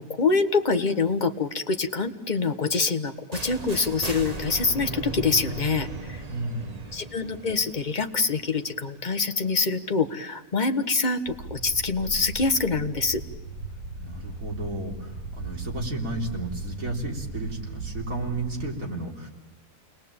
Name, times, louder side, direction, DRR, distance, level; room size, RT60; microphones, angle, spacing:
voice 1, 0.0-6.2 6.9-13.2, left 4 dB, 30° left, 7 dB, 1.4 m, -25 dB
sound 1, 3.3-9.1, right 2 dB, 30° right, 1.3 m, -37 dB
voice 2, 6.3-6.9 14.0-19.3, right 2 dB, 65° right, 0 dB, 4.0 m, -33 dB
sound 2, 11.3-18.7, right 3 dB, 90° right, 1.9 m, -37 dB
29.0 x 20.5 x 8.7 m, 1.1 s
omnidirectional pair, 1.6 m